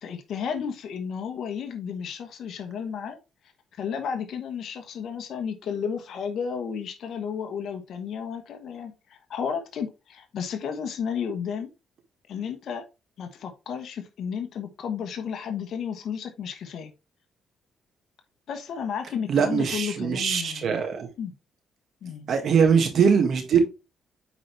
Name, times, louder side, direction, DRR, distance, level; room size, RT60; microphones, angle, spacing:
voice 1, 0.0-3.2 3.8-11.7 12.3-12.8 13.2-16.9 18.5-20.7 21.2-21.3 22.0-22.3, left 7 dB, 65° left, 1.3 m, -33 dB
voice 2, 19.3-21.1 22.3-23.6, right 6 dB, 60° right, 1.8 m, -22 dB
8.8 x 4.1 x 3.4 m
cardioid pair, 90°, 0 cm